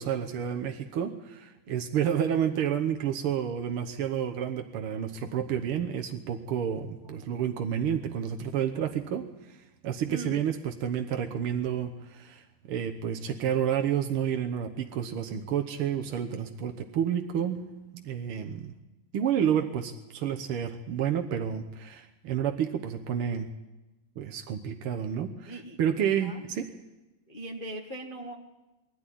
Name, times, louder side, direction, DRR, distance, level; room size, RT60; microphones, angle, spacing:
voice 1, 0.0-9.3 9.8-17.6 17.9-18.7 19.1-23.5 24.2-26.7, right 9 dB, 75° right, 5 dB, 1.3 m, -30 dB
voice 2, 10.1-10.4 25.5-25.8 26.2-26.4 27.3-28.4, right 2 dB, 50° left, 0 dB, 0.6 m, -39 dB
22.0 x 14.0 x 10.0 m, 1.0 s
omnidirectional pair, 3.8 m